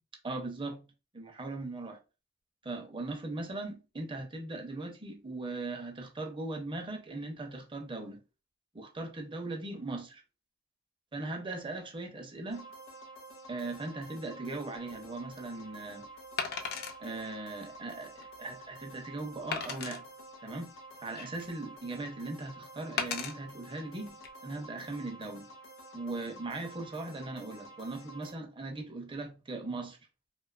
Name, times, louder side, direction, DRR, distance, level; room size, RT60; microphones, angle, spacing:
voice 1, 0.2-0.9 1.1-2.0 2.6-8.2 8.7-10.2 11.1-12.7 13.5-16.1 17.0-20.0 20.4-20.7 21.0-24.2 24.4-25.5 25.9-30.0, right 2 dB, 25° right, 0.5 m, -39 dB
sound 1, 12.5-28.3, right 2 dB, 90° left, 0.7 m, -50 dB
Wood, 14.8-14.9 16.4-17.0 17.6-17.7 18.2-18.3 19.5-20.0 20.8-21.6 23.0-23.3 24.1-24.3, left 5 dB, 55° left, 0.4 m, -35 dB
2.5 x 2.3 x 2.3 m
head